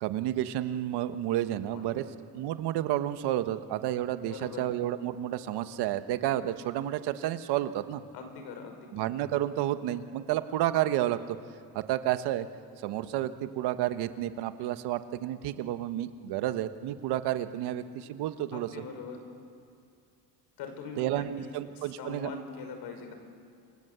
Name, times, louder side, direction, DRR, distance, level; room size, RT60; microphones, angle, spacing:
voice 1, 0.0-2.0 2.3-8.0 8.9-11.4 11.7-12.5 12.8-18.8 21.0-22.3, right 13 dB, 75° right, 10 dB, 1.4 m, -31 dB
voice 2, 1.7-2.0 4.3-4.6 8.1-8.7 18.5-19.2 20.6-23.1, left 4 dB, 75° left, 6 dB, 5.7 m, -42 dB
28.5 x 23.5 x 8.2 m, 2.4 s
cardioid pair, 115°, 40 cm